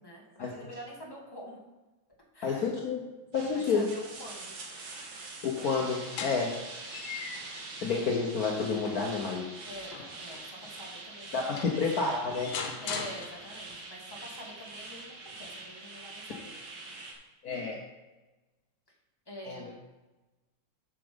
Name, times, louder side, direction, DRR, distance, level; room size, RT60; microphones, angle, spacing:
voice 1, 0.0-1.6 2.3-2.7 3.5-4.5 9.7-11.8 12.8-16.5 19.3-19.8, equal, 10° left, -2 dB, 1.7 m, -46 dB
voice 2, 2.4-3.0 3.3-3.9 5.4-6.5 7.1-7.3 7.8-9.5 11.3-12.6 17.4-17.8 19.5-19.6, left 5 dB, 55° left, -1 dB, 1.3 m, -30 dB
sound 1, 3.3-17.1, right 3 dB, 65° right, 1.9 m, -44 dB
sound 2, 5.6-7.7 8.2-10.7 11.3-11.4 11.6-13.8, left 5 dB, 80° left, 1.7 m, -41 dB
7.5 x 7.2 x 5.1 m, 1.1 s
omnidirectional pair, 2.1 m